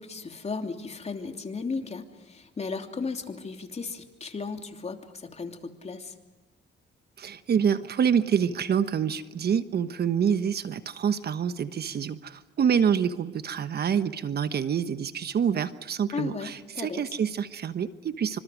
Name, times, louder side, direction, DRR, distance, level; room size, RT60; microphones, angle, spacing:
voice 1, 0.0-6.1 16.1-17.2, left 4 dB, 35° left, 5 dB, 3.0 m, -35 dB
voice 2, 7.2-18.4, right 7 dB, 55° right, 12 dB, 1.3 m, -27 dB
26.5 x 26.0 x 6.3 m, 1.2 s
cardioid pair, 90°, 20 cm